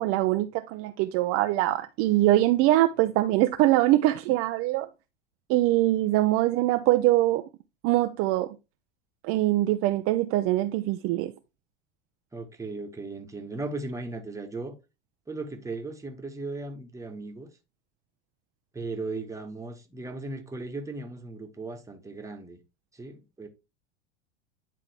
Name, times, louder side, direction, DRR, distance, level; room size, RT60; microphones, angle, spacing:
voice 1, 0.0-4.9 5.5-7.4 7.8-8.5 9.2-11.3, right 16 dB, 45° right, 0.6 m, -23 dB
voice 2, 12.3-14.7 15.3-17.5 18.7-22.6 22.9-23.5, right 3 dB, 10° right, 1.3 m, -37 dB
10.0 x 3.7 x 3.4 m
hypercardioid pair, 90°, 34 cm